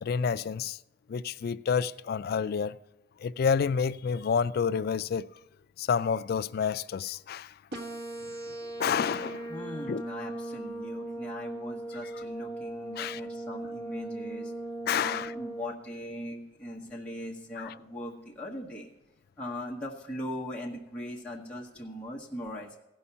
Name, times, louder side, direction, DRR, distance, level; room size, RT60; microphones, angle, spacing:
voice 1, 0.0-0.8 1.1-2.7 3.2-5.3 5.8-7.5 8.8-9.5 9.9-10.0 13.0-13.2 14.9-15.3 17.6-17.7, left 6 dB, 50° left, 0.3 m, -29 dB
sound 1, 7.7-15.7, right 1 dB, 55° right, 1.4 m, -38 dB
voice 2, 9.5-14.5 15.0-18.9 19.4-22.8, left 1 dB, 5° left, 1.1 m, -40 dB
16.0 x 5.6 x 6.8 m
head